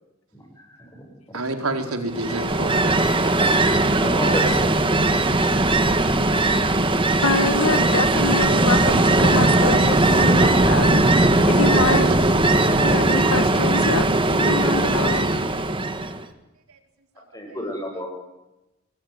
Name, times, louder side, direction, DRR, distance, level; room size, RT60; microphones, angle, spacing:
voice 1, 1.3-2.9 11.9-12.4 16.7-16.8 17.5-17.7, right 2 dB, 80° right, 5 dB, 4.3 m, -28 dB
Ocean, 2.1-16.2, right 2 dB, 25° right, 1.6 m, -19 dB
voice 2, 4.0-5.2 17.3-18.1, equal, 15° left, 2 dB, 7.8 m, -30 dB
voice 3, 7.2-12.0 12.8-14.0 14.3-15.3, left 3 dB, 70° left, 11 dB, 1.8 m, -26 dB
26.0 x 21.0 x 9.7 m, 0.97 s
head